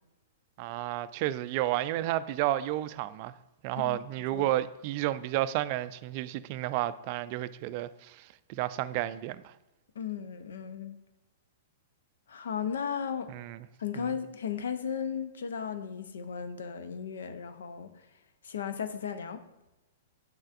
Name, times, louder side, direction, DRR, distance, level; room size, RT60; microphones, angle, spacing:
voice 1, 0.6-3.3 3.6-9.5 13.3-13.7 14.0-14.2, right 14 dB, 45° right, 0.3 m, -31 dB
voice 2, 3.7-4.5 10.0-11.0 12.3-13.3 13.8-17.9 18.4-19.4, left 7 dB, 70° left, 0.6 m, -35 dB
8.5 x 6.3 x 2.5 m
hypercardioid pair, 110°, 0 cm